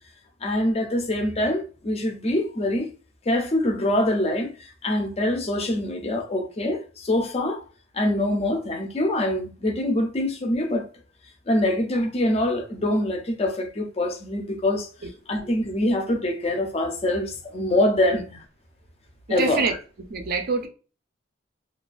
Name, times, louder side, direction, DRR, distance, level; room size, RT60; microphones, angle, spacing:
voice 1, 0.4-2.9 3.3-7.6 7.9-10.9 11.5-14.9 15.3-18.2 19.3-19.8, left 1 dB, 30° left, 0.5 m, -24 dB
voice 2, 19.3-19.7 20.1-20.7, right 4 dB, 50° right, 0.5 m, -25 dB
2.4 x 2.2 x 2.4 m
head